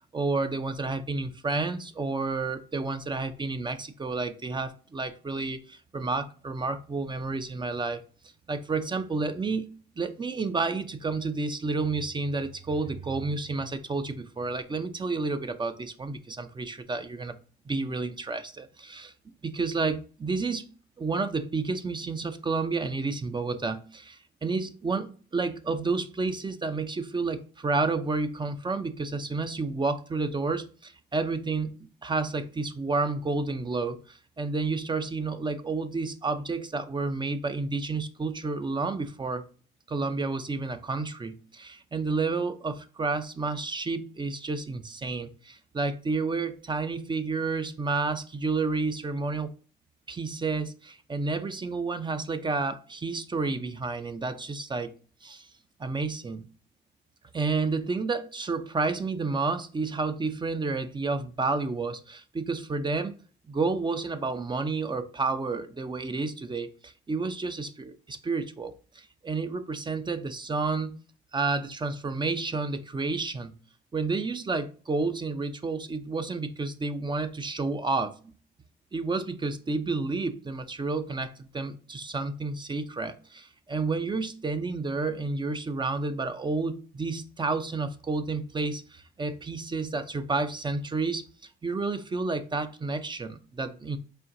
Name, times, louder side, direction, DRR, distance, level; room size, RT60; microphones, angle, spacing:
voice 1, 0.1-8.0 8.5-9.7 10.0-17.4 17.7-20.6 21.0-39.4 39.9-49.5 50.1-54.9 55.2-55.5 55.8-56.5 57.3-63.2 63.5-71.0 71.3-73.5 73.9-78.3 78.9-91.2 91.6-94.0, right 3 dB, 25° right, 0.5 m, -30 dB
4.3 x 2.6 x 3.7 m
cardioid pair, 90°, 20 cm